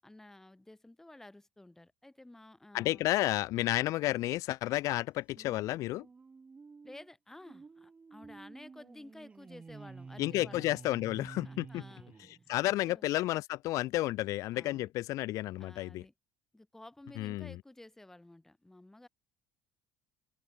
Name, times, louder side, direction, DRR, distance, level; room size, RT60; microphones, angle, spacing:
voice 1, 0.0-3.0 6.8-10.7 11.4-12.1 12.6-13.1 14.5-14.9 15.6-16.1 16.5-19.1, left 1 dB, 5° left, 7.2 m, -53 dB
voice 2, 2.7-6.0 10.2-11.8 12.2-16.0 17.2-17.6, left 17 dB, 60° left, 1.6 m, -32 dB
sound 1, 5.3-12.8, right 4 dB, 20° right, 5.3 m, -51 dB
cardioid pair, 130°, 6 cm